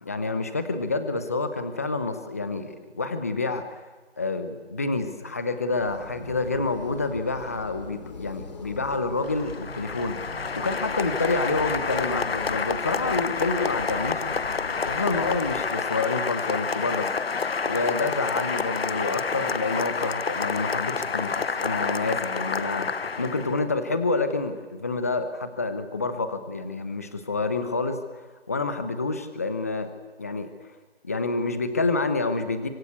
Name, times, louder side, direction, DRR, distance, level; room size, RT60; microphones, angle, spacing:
voice 1, 0.0-3.8 4.2-10.2 10.5-14.2 14.8-17.1 17.6-28.0 28.5-29.9 30.2-30.5 31.0-32.7, left 3 dB, 15° left, 10 dB, 0.9 m, -28 dB
sound 1, 5.8-15.7, left 3 dB, 40° left, 2.6 m, -41 dB
Applause, 9.2-23.6, left 5 dB, 65° left, 0.9 m, -29 dB
24.5 x 24.5 x 8.4 m, 1.3 s
figure-of-eight pair, 165°, 33 cm